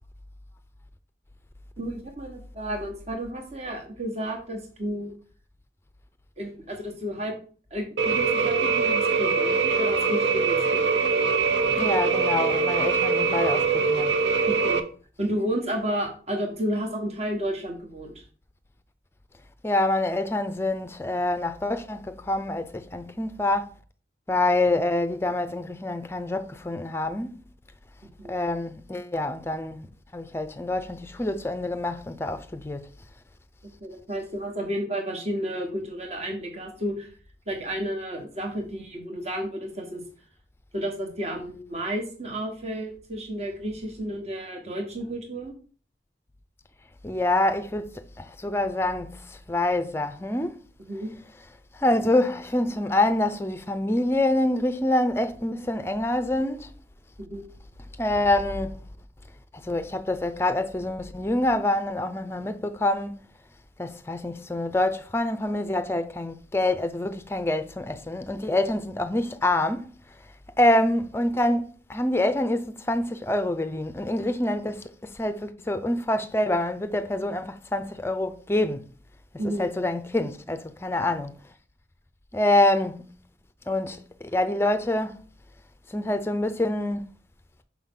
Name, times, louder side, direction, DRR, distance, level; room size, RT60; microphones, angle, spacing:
voice 1, 1.8-5.1 6.4-7.3 7.7-10.9 14.5-14.8 15.2-18.2 28.2-28.3 33.8-37.1 37.5-40.0 40.7-45.5 50.8-51.1 57.2-57.4 79.4-79.7, equal, 35° right, 1.4 m, -32 dB
sound 1, 8.0-14.8, right 5 dB, 80° right, 0.8 m, -23 dB
voice 2, 11.6-14.1 19.6-23.7 24.3-27.4 28.3-29.9 30.1-32.8 47.0-47.9 48.2-50.6 51.8-56.7 58.0-58.8 59.5-63.2 63.8-69.9 70.6-78.8 79.4-81.3 82.3-83.1 83.7-85.2 85.9-87.1, left 1 dB, 15° left, 0.5 m, -26 dB
6.2 x 5.5 x 3.7 m
head